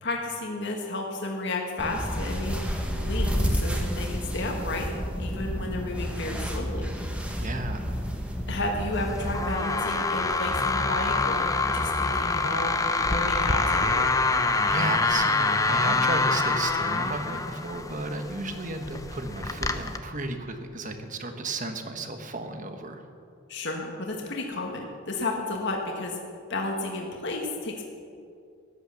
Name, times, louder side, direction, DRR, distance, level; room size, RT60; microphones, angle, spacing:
voice 1, 0.0-2.6 3.0-4.9 5.2-6.9 8.5-14.0 23.5-26.2 26.5-27.9, left 2 dB, 55° left, 1 dB, 1.7 m, -32 dB
sound 1, 1.8-9.5, equal, 5° right, 1.5 m, -30 dB
voice 2, 7.4-8.0 14.7-23.0, right 2 dB, 40° right, 6 dB, 1.3 m, -34 dB
sound 2, 8.9-20.0, left 3 dB, 15° left, 0.7 m, -26 dB
14.5 x 11.5 x 7.0 m, 2.4 s
head